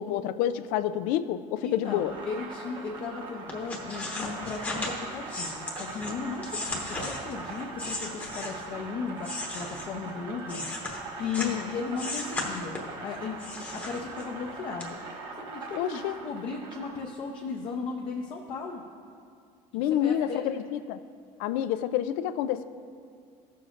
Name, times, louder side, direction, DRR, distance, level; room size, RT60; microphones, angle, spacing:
voice 1, 0.0-2.1 11.4-11.7 15.8-16.2 19.7-21.0 21.4-22.6, left 11 dB, 90° left, 13 dB, 0.4 m, -28 dB
voice 2, 1.6-10.6 11.2-13.4 13.7-15.0 15.4-18.8 19.7-20.6, left 5 dB, 40° left, -1 dB, 0.6 m, -36 dB
sound 1, 1.8-17.0, right 3 dB, 35° right, 0.9 m, -41 dB
sound 2, 3.5-8.8 9.2-11.6 11.9-13.0 13.4-14.4 14.8-14.9, left 2 dB, 10° left, 0.9 m, -36 dB
16.0 x 6.9 x 2.5 m, 2.2 s
cardioid pair, 180°, 14 cm